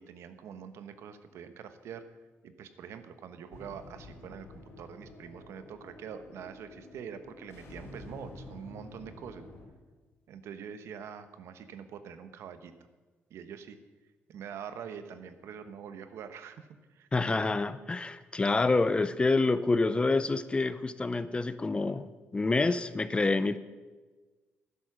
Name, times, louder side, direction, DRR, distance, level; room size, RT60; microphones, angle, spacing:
voice 1, 0.0-2.0 2.4-9.5 10.3-12.7 13.3-13.8 14.3-17.1, right 7 dB, 80° right, 10 dB, 1.0 m, -45 dB
sound 1, 3.5-9.6, left 2 dB, 65° left, 3.5 m, -49 dB
voice 2, 17.1-23.6, left 3 dB, 20° left, 14 dB, 0.6 m, -27 dB
12.0 x 10.5 x 6.1 m, 1.3 s
cardioid pair, 100°, 5 cm